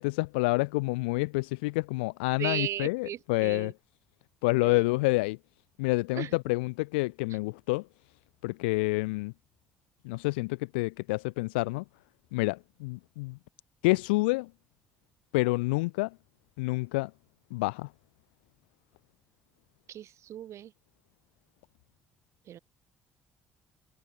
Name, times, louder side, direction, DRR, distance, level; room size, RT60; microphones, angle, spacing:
voice 1, 0.0-3.7 4.4-5.4 5.8-7.8 8.4-9.3 10.0-11.8 12.3-13.4 13.8-14.5 15.3-16.1 16.6-17.1 17.5-17.9, left 25 dB, 80° left, 0.3 m, -28 dB
voice 2, 2.4-3.7 4.6-4.8 6.1-6.4 19.9-20.7 22.5-22.6, right 11 dB, 60° right, 1.3 m, -36 dB
hypercardioid pair, 50°, 6 cm